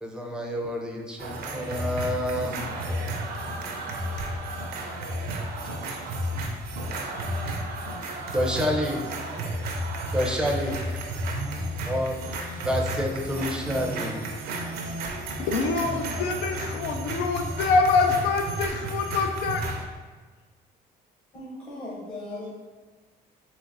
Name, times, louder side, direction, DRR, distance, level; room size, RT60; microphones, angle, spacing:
voice 1, 0.0-2.7 8.3-9.1 10.1-10.7 11.8-12.2 12.5-14.2, equal, 5° right, 0 dB, 0.5 m, -28 dB
sound 1, 1.2-19.8, right 1 dB, 65° right, 0.5 m, -32 dB
voice 2, 10.2-10.7 11.2-12.0 21.3-22.5, left 2 dB, 30° left, -6 dB, 0.8 m, -40 dB
voice 3, 15.4-19.6, left 4 dB, 90° left, 4 dB, 0.4 m, -25 dB
3.9 x 2.8 x 2.6 m, 1.4 s
cardioid pair, 110°, 17 cm